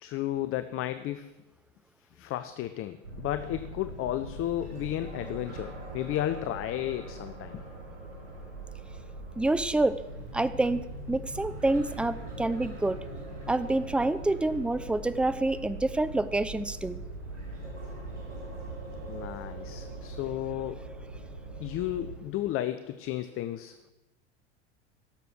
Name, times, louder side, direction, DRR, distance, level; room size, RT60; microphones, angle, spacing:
voice 1, 0.0-1.3 2.1-7.6 19.1-20.8 21.6-23.9, left 13 dB, 40° left, 11 dB, 0.7 m, -33 dB
sound 1, 3.0-22.2, right 2 dB, 85° right, 5.9 m, -41 dB
voice 2, 9.4-9.9 10.3-13.0 13.5-17.0, right 2 dB, 5° right, 14 dB, 0.5 m, -27 dB
17.0 x 6.9 x 6.3 m, 0.98 s
hypercardioid pair, 80°, 35 cm